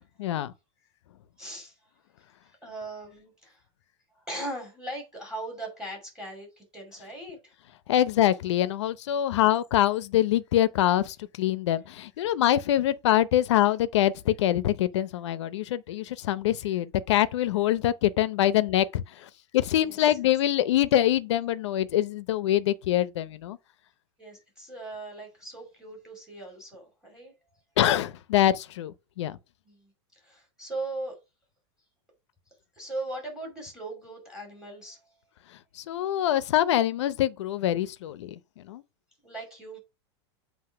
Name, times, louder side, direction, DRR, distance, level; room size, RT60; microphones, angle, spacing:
voice 1, 0.2-0.5 7.9-23.6 27.8-29.4 35.8-38.8, left 12 dB, 80° left, 0.7 m, -25 dB
voice 2, 1.4-1.8 2.4-3.6 4.2-7.5 19.8-20.0 24.2-27.3 29.6-31.1 32.8-35.1 39.2-39.8, right 2 dB, 5° right, 2.4 m, -39 dB
7.8 x 2.7 x 5.6 m
supercardioid pair, 150°, 15 cm